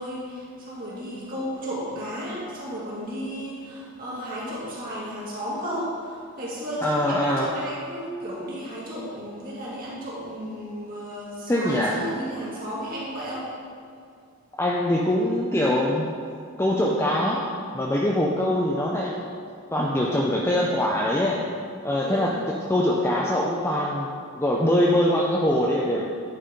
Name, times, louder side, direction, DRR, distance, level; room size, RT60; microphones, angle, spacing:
voice 1, 0.0-13.5 22.0-22.4, equal, 40° right, -8 dB, 2.3 m, -34 dB
voice 2, 6.8-7.5 11.5-12.0 14.6-16.1 16.6-17.4 17.7-19.2 19.7-21.4 21.8-22.3 22.7-24.1 24.4-26.1, left 1 dB, 10° left, -3 dB, 0.5 m, -23 dB
10.5 x 4.6 x 5.2 m, 2.3 s
head